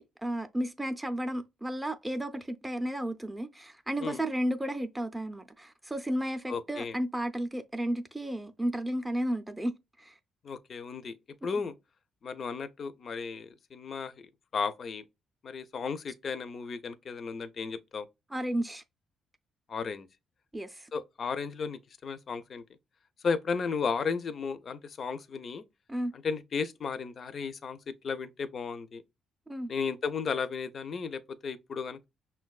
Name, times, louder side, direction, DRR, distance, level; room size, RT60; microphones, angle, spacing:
voice 1, 0.2-9.7 10.0-10.1 18.3-18.8 20.5-20.9 25.9-26.1 29.5-29.7, right 1 dB, 10° right, 0.4 m, -33 dB
voice 2, 6.5-7.0 10.4-11.1 11.4-11.7 12.2-14.1 14.5-15.0 15.4-18.1 19.7-20.1 20.9-22.6 23.2-25.6 26.1-29.0 29.7-32.1, left 5 dB, 50° left, 0.4 m, -34 dB
5.5 x 2.2 x 2.3 m
cardioid pair, 90°, 0 cm